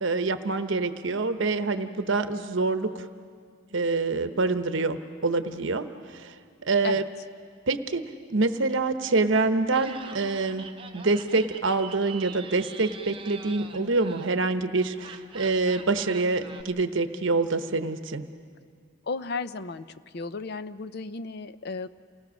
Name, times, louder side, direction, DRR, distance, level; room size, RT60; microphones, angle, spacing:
voice 1, 0.0-3.0 3.7-6.3 6.6-7.0 7.7-8.0 8.3-10.7 10.9-18.3, right 3 dB, 60° right, 9 dB, 1.0 m, -26 dB
Laughter, 9.7-16.6, right 5 dB, 25° right, 0.8 m, -44 dB
voice 2, 19.1-19.9 20.1-21.9, left 4 dB, 50° left, 13 dB, 0.5 m, -34 dB
28.5 x 18.5 x 6.4 m, 2.1 s
head